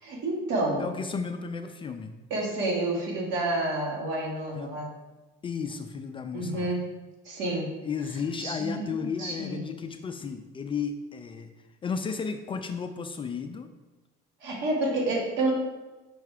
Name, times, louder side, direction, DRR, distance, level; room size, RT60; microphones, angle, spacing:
voice 1, 0.0-0.9 2.3-4.9 6.3-6.9 7.3-7.8 8.4-9.6 14.4-15.5, right 2 dB, 65° right, -2 dB, 1.8 m, -29 dB
voice 2, 0.8-2.1 4.5-4.8 5.4-6.7 7.8-13.7, left 5 dB, 25° left, 7 dB, 0.3 m, -34 dB
5.7 x 3.4 x 4.8 m, 1.1 s
cardioid pair, 120°, 21 cm